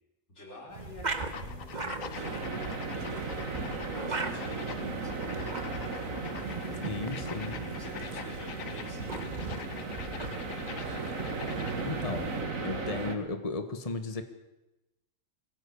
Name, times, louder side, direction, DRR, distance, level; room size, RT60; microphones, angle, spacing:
voice 1, 0.3-2.5 2.9-3.6 4.1-5.5 7.0-9.8 10.5-11.0, left 1 dB, 60° left, -2 dB, 4.9 m, -50 dB
sound 1, 0.7-12.5, right 3 dB, 35° right, 1.6 m, -40 dB
sound 2, 1.2-11.9, left 8 dB, 85° left, 1.4 m, -45 dB
sound 3, 2.1-13.2, right 3 dB, 90° right, 2.7 m, -36 dB
voice 2, 6.8-7.6 11.9-12.3 12.6-14.2, left 3 dB, 25° left, 9 dB, 1.5 m, -35 dB
22.5 x 16.5 x 8.5 m, 0.98 s
omnidirectional pair, 1.4 m